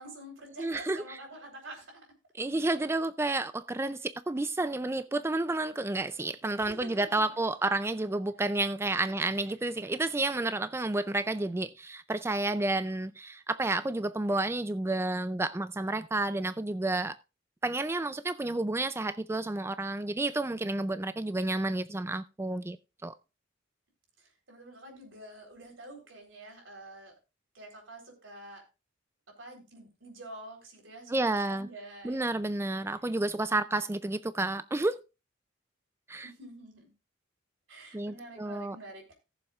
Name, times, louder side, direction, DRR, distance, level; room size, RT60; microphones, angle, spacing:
voice 1, 0.0-2.1 6.6-6.9 7.3-7.4 9.0-9.1 9.5-9.6 24.2-27.1 27.5-28.6 29.3-32.4 32.9-33.0 36.2-36.9 37.7-39.1, right 1 dB, 90° right, 4.0 m, -48 dB
voice 2, 0.6-1.2 2.4-17.1 17.6-22.8 23.0-23.1 31.1-31.7 32.0-35.0 36.1-36.3 37.9-38.8, right 2 dB, 15° right, 0.4 m, -30 dB
18.5 x 7.1 x 2.4 m
head